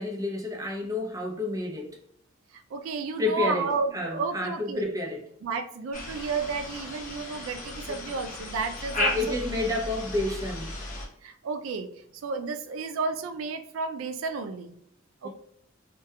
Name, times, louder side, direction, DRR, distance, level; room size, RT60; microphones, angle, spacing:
voice 1, 0.0-2.0 3.2-5.2 7.9-8.0 9.0-10.7 15.2-15.3, left 2 dB, 20° right, -1 dB, 0.5 m, -30 dB
voice 2, 2.5-4.9 5.4-9.4 11.2-14.8 15.2-15.3, right 4 dB, 85° right, 8 dB, 0.3 m, -32 dB
sound 1, 5.9-11.1, left 2 dB, 40° left, 0.7 m, -35 dB
2.3 x 2.2 x 2.7 m, 0.71 s
head